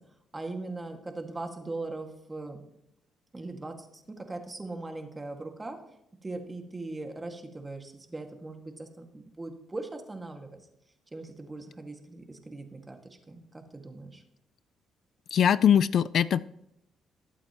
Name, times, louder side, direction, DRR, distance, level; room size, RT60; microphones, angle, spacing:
voice 1, 0.3-2.6 3.3-5.8 6.2-10.7 11.1-13.0 13.3-14.2, right 2 dB, 20° right, 4 dB, 2.0 m, -40 dB
voice 2, 15.3-16.4, left 9 dB, 60° left, 17 dB, 0.3 m, -22 dB
20.5 x 8.5 x 3.0 m, 0.78 s
cardioid pair, 90°, 0 cm